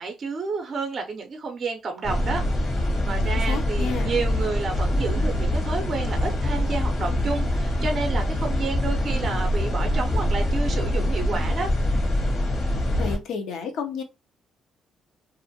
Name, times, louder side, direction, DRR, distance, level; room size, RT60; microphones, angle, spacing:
voice 1, 0.0-2.4 2.8-11.7, right 4 dB, 45° right, 4 dB, 0.5 m, -30 dB
sound 1, 2.0-13.2, left 1 dB, 60° left, 1.1 m, -24 dB
voice 2, 3.2-4.1 13.0-14.0, left 6 dB, 80° left, 5 dB, 0.7 m, -31 dB
2.5 x 2.4 x 2.7 m, 0.26 s
cardioid pair, 90°, 0 cm